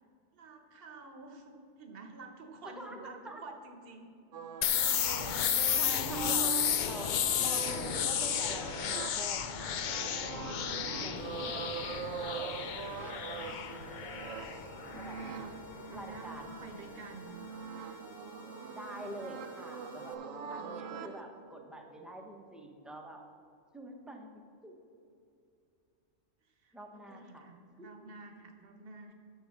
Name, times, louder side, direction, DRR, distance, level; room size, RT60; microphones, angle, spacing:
voice 1, 0.3-4.1 5.5-5.7 6.8-8.1 10.6-11.5 14.9-17.4 26.4-29.1, right 3 dB, 50° right, 5 dB, 1.1 m, -50 dB
voice 2, 2.6-3.4 5.2-5.5 5.8-7.1 7.4-10.6 11.0-12.7 15.0-15.2 15.9-16.5 18.7-20.1 20.5-23.2 23.7-24.7 26.7-27.5 27.8-27.9, right 1 dB, ahead, 2 dB, 0.6 m, -46 dB
sound 1, 4.3-21.2, right 7 dB, 80° right, 1.0 m, -43 dB
sound 2, 4.6-16.2, left 9 dB, 80° left, 0.4 m, -33 dB
sound 3, 11.1-20.1, left 1 dB, 55° left, 1.1 m, -53 dB
8.2 x 6.3 x 6.3 m, 2.5 s
omnidirectional pair, 1.3 m